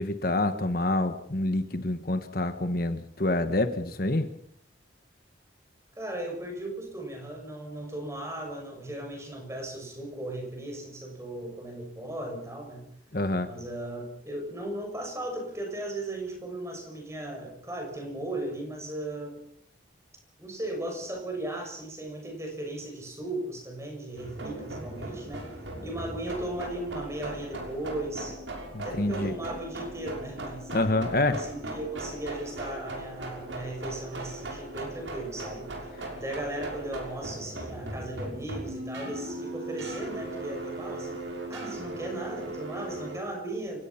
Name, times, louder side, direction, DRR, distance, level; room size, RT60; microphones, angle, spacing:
voice 1, 0.0-4.3 13.1-13.5 28.7-29.3 30.7-31.4, left 2 dB, 50° left, 9 dB, 1.3 m, -27 dB
voice 2, 5.9-12.9 13.5-19.4 20.4-25.5 25.8-28.4 28.8-35.7 36.1-41.2 41.5-43.8, right 1 dB, 15° right, 2 dB, 6.6 m, -37 dB
sound 1, 24.2-43.2, right 1 dB, 80° right, 6.4 m, -38 dB
29.5 x 17.5 x 5.8 m, 0.68 s
head